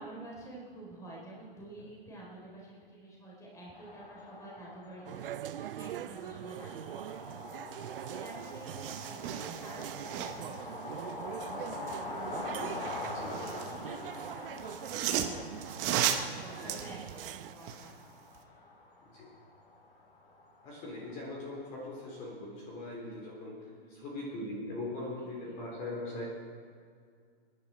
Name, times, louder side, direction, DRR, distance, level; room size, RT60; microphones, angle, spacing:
voice 1, 0.0-16.0 16.4-18.6 23.8-24.2 25.1-25.6, right 2 dB, 10° left, -4 dB, 3.8 m, -50 dB
sound 1, 3.7-22.3, left 2 dB, 85° left, 5.5 m, -44 dB
sound 2, 5.1-17.5, right 12 dB, 65° right, 0.5 m, -43 dB
voice 2, 7.6-8.0 13.0-13.6 16.5-16.7 19.0-19.3 20.6-26.3, left 2 dB, 25° left, -3 dB, 3.7 m, -41 dB
sound 3, 8.0-8.1 8.3-10.6 12.7-13.8 14.6-17.9 18.3-18.4, right 10 dB, 25° right, 1.0 m, -35 dB
27.0 x 11.0 x 4.4 m, 2.1 s
hypercardioid pair, 160°, 30 cm